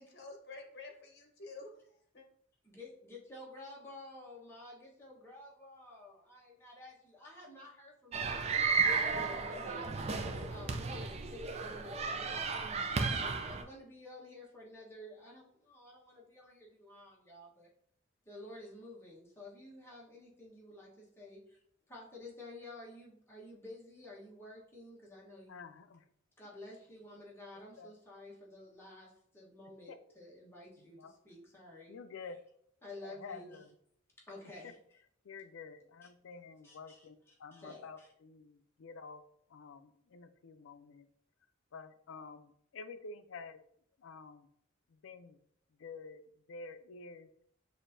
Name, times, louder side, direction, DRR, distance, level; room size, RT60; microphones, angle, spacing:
voice 1, 0.0-2.2, left 3 dB, 55° left, 1.0 m, -50 dB
voice 2, 2.6-8.5 8.8-10.1 10.5-12.8 13.1-17.7 18.3-21.6 21.9-25.6 26.4-32.0 32.8-33.7 34.2-34.8 36.6-38.1, left 1 dB, 10° left, 1.1 m, -51 dB
sound 1, 8.1-13.6, right 4 dB, 35° right, 0.4 m, -34 dB
voice 3, 25.5-26.0 27.8-27.9 29.9-30.0 31.0-31.1 31.9-32.4 33.0-33.6 35.2-39.2 39.5-41.1 41.7-43.6 44.0-44.5 45.0-45.4 45.8-46.2 46.5-47.3, left 4 dB, 85° left, 0.4 m, -49 dB
6.3 x 2.7 x 2.6 m
head